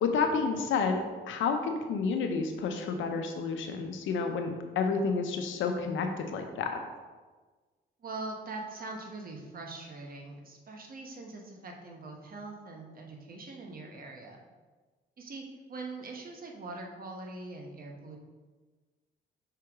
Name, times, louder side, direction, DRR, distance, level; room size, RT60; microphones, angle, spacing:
voice 1, 0.0-6.7, left 5 dB, 75° left, 5 dB, 0.8 m, -30 dB
voice 2, 8.0-14.4 15.2-18.2, right 3 dB, 45° right, 1 dB, 1.2 m, -42 dB
5.7 x 4.7 x 3.6 m, 1.4 s
cardioid pair, 90°, 20 cm